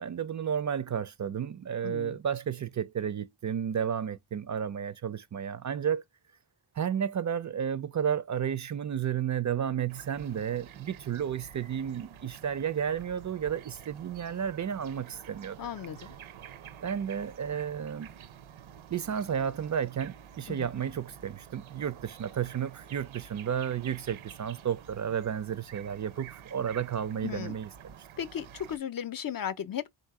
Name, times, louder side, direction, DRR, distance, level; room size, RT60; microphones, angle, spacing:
voice 1, 0.0-6.0 6.8-15.6 16.8-18.1 18.9-27.9, right 8 dB, 40° right, 0.5 m, -32 dB
voice 2, 1.8-2.2 15.6-16.1 20.5-20.7 27.2-27.6 28.2-30.0, left 9 dB, 50° left, 0.5 m, -36 dB
sound 1, 9.9-28.8, right 9 dB, 80° right, 0.7 m, -49 dB
3.9 x 2.7 x 4.7 m
cardioid pair, 85°, 47 cm